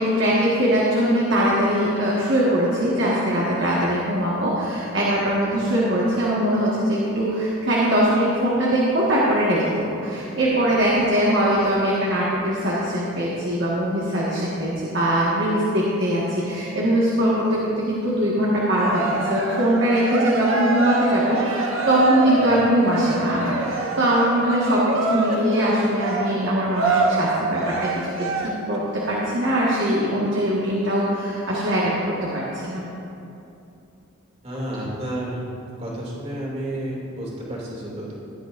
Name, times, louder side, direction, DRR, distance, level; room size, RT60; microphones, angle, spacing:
voice 1, 0.0-9.7 10.0-27.9 28.7-31.9 32.3-32.8, right 1 dB, 55° right, -7 dB, 1.7 m, -21 dB
Cheering, 18.7-28.8, right 3 dB, 75° right, 1.0 m, -26 dB
voice 2, 34.4-35.4 35.8-38.1, right 1 dB, 30° right, -5 dB, 2.6 m, -31 dB
16.5 x 11.0 x 2.6 m, 2.8 s
head